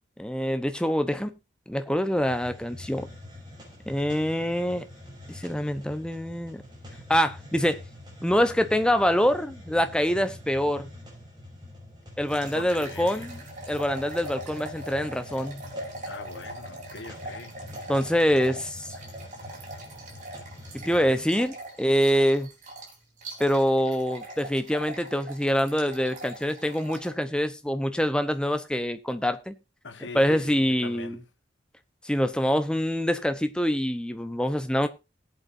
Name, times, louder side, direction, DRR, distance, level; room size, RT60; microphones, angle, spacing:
voice 1, 0.2-1.4 1.7-3.1 3.9-4.9 5.3-6.6 7.1-7.8 8.2-10.9 12.2-13.4 13.7-15.6 17.9-18.9 20.7-22.5 23.4-29.5 30.1-31.2 32.0-34.9, equal, 5° left, 0.9 m, -25 dB
Hiss, 2.1-21.4, left 1 dB, 25° right, 5.5 m, -45 dB
sound 1, 12.3-27.1, right 1 dB, 40° right, 4.0 m, -42 dB
voice 2, 12.4-13.2 16.0-17.5 29.8-31.2, left 3 dB, 80° left, 1.5 m, -41 dB
19.5 x 8.2 x 2.7 m
head